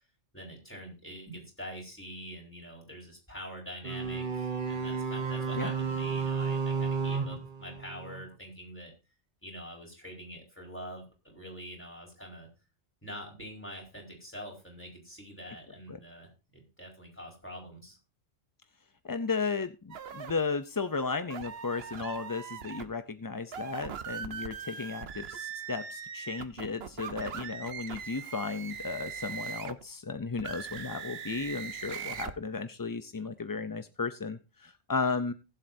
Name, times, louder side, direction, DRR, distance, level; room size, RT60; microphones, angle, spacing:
voice 1, 0.3-8.9 9.4-12.5 13.0-18.0, equal, 10° left, -1 dB, 4.4 m, -45 dB
sound 1, 3.8-8.3, right 5 dB, 45° right, 1.3 m, -32 dB
voice 2, 19.0-35.3, left 4 dB, 30° left, 11 dB, 0.4 m, -34 dB
sound 2, 19.9-20.3 21.3-22.9 23.4-29.8 30.4-32.3, right 7 dB, 65° right, 1.1 m, -40 dB
19.5 x 7.7 x 2.7 m, 0.30 s
omnidirectional pair, 1.2 m